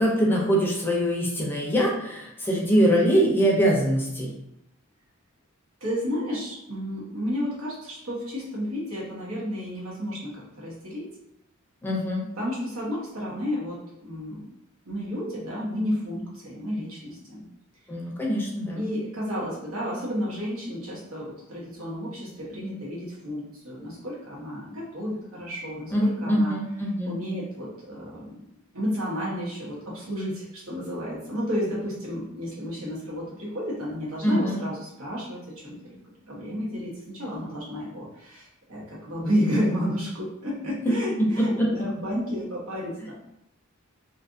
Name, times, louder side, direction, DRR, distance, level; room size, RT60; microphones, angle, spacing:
voice 1, 0.0-4.3 11.8-12.2 17.9-18.8 25.9-27.2 34.2-34.6 40.8-40.9 41.4-41.7, equal, 10° left, -3 dB, 0.5 m, -23 dB
voice 2, 5.8-11.1 12.4-13.8 14.0-14.4 14.8-17.4 18.7-26.5 27.0-28.4 28.7-36.0 36.2-43.1, equal, 80° right, -5 dB, 1.0 m, -31 dB
2.6 x 2.4 x 2.5 m, 0.84 s
head